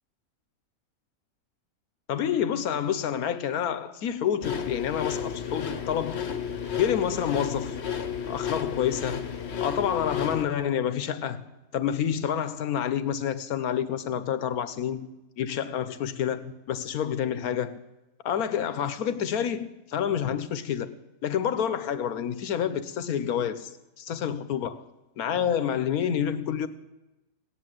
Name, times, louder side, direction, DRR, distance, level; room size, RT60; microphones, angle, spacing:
voice 1, 2.1-6.3 6.7-7.8 8.3-9.3 9.6-11.4 11.7-15.1 15.4-17.8 18.2-21.0 21.2-23.7 24.0-24.8 25.2-26.7, left 9 dB, 80° left, 1.3 m, -28 dB
sound 1, 4.4-10.4, left 7 dB, 50° left, 1.1 m, -32 dB
16.5 x 10.5 x 7.7 m
omnidirectional pair, 1.6 m